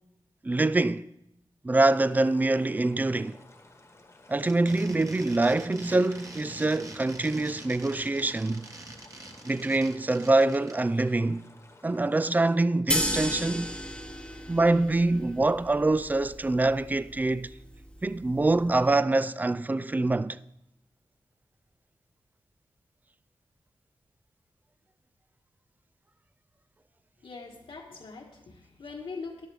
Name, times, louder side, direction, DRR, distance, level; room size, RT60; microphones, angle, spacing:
voice 1, 0.4-1.1 1.6-3.4 4.3-8.7 9.4-11.4 11.8-13.7 14.5-17.5 18.0-20.4, right 2 dB, 15° right, 0.3 m, -25 dB
sound 1, 1.7-12.6, left 2 dB, 30° left, 1.3 m, -54 dB
sound 2, 4.3-11.0, right 2 dB, 35° right, 1.4 m, -45 dB
sound 3, 12.9-18.9, equal, 10° left, 1.0 m, -35 dB
voice 2, 27.2-29.5, left 4 dB, 70° left, 1.6 m, -42 dB
13.0 x 11.0 x 3.4 m
wide cardioid pair, 80°, 10 cm